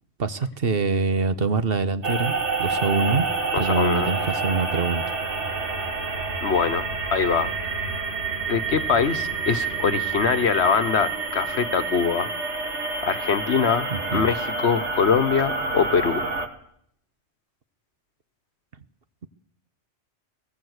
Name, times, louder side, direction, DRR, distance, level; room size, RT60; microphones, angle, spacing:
voice 1, 0.2-2.3 2.6-3.2 3.6-5.0 13.9-14.3, right 4 dB, 55° right, 12 dB, 1.2 m, -24 dB
sound 1, 2.0-16.5, right 4 dB, 80° right, 2.3 m, -28 dB
voice 2, 3.5-4.1 6.4-7.5 8.5-12.3 13.0-16.2, left 6 dB, 70° left, 12 dB, 1.4 m, -23 dB
19.5 x 18.5 x 8.1 m, 0.70 s
omnidirectional pair, 1.2 m